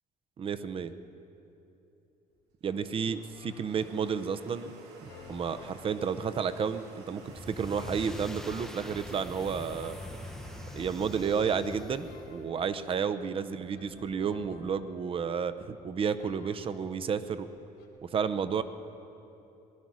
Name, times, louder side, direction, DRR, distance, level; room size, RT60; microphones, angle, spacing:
voice 1, 0.4-0.9 2.6-4.7 5.0-7.2 7.5-10.0 10.7-17.5 18.0-18.6, right 6 dB, 35° right, 12 dB, 0.7 m, -31 dB
Domestic sounds home sounds, 2.3-13.0, right 3 dB, 85° right, 2.2 m, -53 dB
sound 1, 3.3-4.2 5.0-6.8 7.7-8.8 9.3-11.1 12.0-13.2 13.7-15.6 16.2-17.4 17.8-17.9, left 5 dB, 85° left, 3.4 m, -54 dB
sound 2, 7.2-12.5, left 1 dB, ahead, 0.7 m, -44 dB
19.5 x 12.0 x 6.2 m, 2.9 s
cardioid pair, 125°, 16 cm